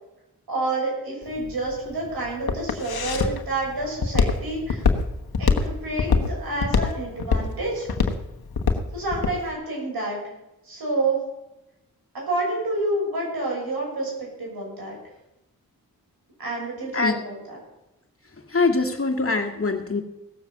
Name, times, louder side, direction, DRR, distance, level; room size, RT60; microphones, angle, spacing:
voice 1, 0.5-4.8 5.4-7.9 8.9-10.3 10.6-11.2 12.1-15.0 16.4-17.6, right 2 dB, 80° right, -2 dB, 6.7 m, -28 dB
Walk footsteps, 1.2-9.4, left 5 dB, 80° left, 1.3 m, -23 dB
voice 2, 18.5-20.0, left 3 dB, 40° left, 3 dB, 2.1 m, -23 dB
17.0 x 7.4 x 7.3 m, 0.94 s
cardioid pair, 45°, 36 cm